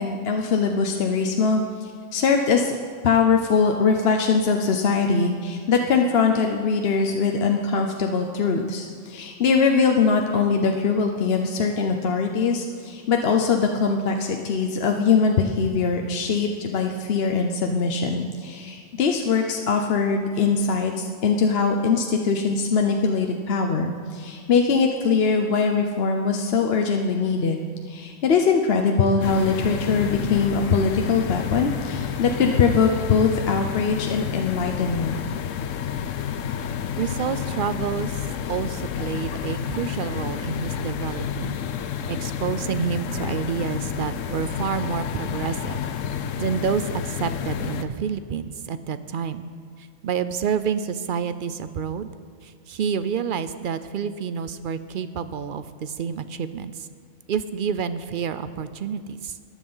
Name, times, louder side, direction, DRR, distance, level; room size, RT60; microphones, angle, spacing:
voice 1, 0.0-2.8 3.0-35.2, left 5 dB, 55° left, 3 dB, 0.9 m, -22 dB
sound 1, 29.2-47.8, left 8 dB, 85° left, 1.0 m, -30 dB
voice 2, 37.0-41.6 42.1-45.8 46.4-49.5 49.8-52.1 52.4-56.9 57.3-59.4, right 7 dB, 55° right, 12 dB, 0.6 m, -29 dB
14.5 x 10.0 x 5.6 m, 2.2 s
omnidirectional pair, 1.3 m